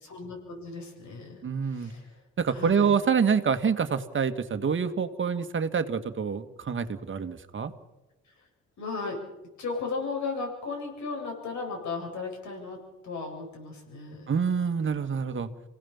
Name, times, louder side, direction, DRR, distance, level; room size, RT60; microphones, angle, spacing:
voice 1, 0.0-2.2 2.5-2.9 8.8-9.2 9.6-14.3, left 4 dB, 70° left, 1 dB, 7.6 m, -36 dB
voice 2, 1.4-1.9 2.4-7.7 14.3-15.5, right 6 dB, 40° right, 9 dB, 1.7 m, -26 dB
27.0 x 17.5 x 7.2 m, 1.0 s
cardioid pair, 90°, 30 cm